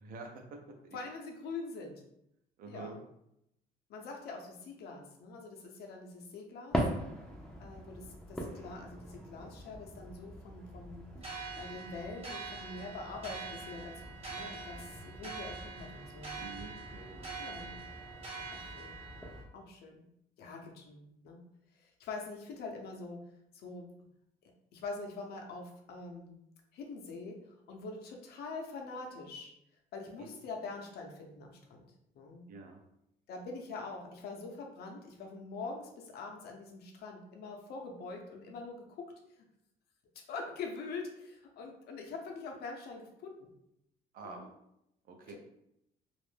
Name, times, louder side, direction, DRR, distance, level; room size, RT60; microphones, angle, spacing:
voice 1, 0.0-1.0 2.6-3.0 16.4-17.4 30.2-30.3 32.5-32.8 44.1-44.5 45.1-45.3, right 3 dB, 60° right, 4 dB, 0.6 m, -47 dB
voice 2, 0.9-2.0 2.7-2.9 3.9-6.8 7.6-11.1 11.6-16.4 17.4-17.8 18.5-18.9 19.5-20.0 20.4-21.4 21.8-23.2 23.5-23.9 24.7-26.4 26.7-29.5 29.9-31.8 32.1-32.4 33.3-39.1 40.3-43.5 44.2-44.5, left 3 dB, 70° left, 2 dB, 0.6 m, -44 dB
sound 1, 6.7-19.4, equal, 5° left, 0.5 m, -42 dB
sound 2, 11.2-19.4, right 4 dB, 35° right, 1.0 m, -45 dB
2.4 x 2.0 x 3.2 m, 0.80 s
cardioid pair, 110°, 17 cm